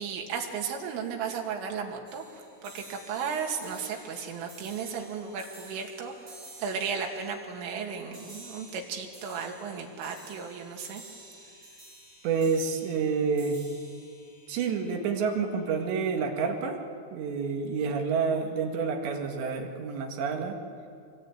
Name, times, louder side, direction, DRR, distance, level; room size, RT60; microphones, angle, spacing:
voice 1, 0.0-11.0, right 6 dB, 90° right, 1 dB, 4.9 m, -35 dB
sound 1, 2.1-15.5, right 2 dB, 20° right, 5.9 m, -51 dB
voice 2, 12.2-13.6 14.5-16.8 17.1-20.6, right 5 dB, 70° right, 3 dB, 4.1 m, -28 dB
26.0 x 22.0 x 9.2 m, 2.4 s
omnidirectional pair, 5.5 m